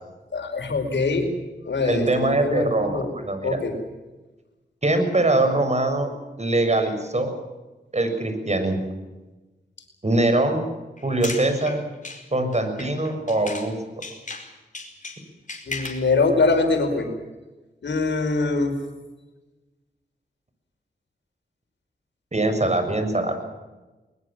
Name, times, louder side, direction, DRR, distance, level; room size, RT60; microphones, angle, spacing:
voice 1, 0.3-1.3 1.6-3.1 3.4-3.7 15.7-17.1 17.8-18.8, left 3 dB, 85° left, 5 dB, 5.0 m, -23 dB
voice 2, 1.8-3.6 4.8-6.1 6.4-7.3 7.9-8.8 10.0-10.7 11.0-11.8 12.3-13.7 22.3-23.4, right 2 dB, 40° right, 7 dB, 6.9 m, -22 dB
sound 1, 11.0-13.7 14.0-16.1, left 3 dB, 45° left, 4.8 m, -36 dB
22.0 x 21.5 x 7.6 m, 1.1 s
cardioid pair, 45°, 18 cm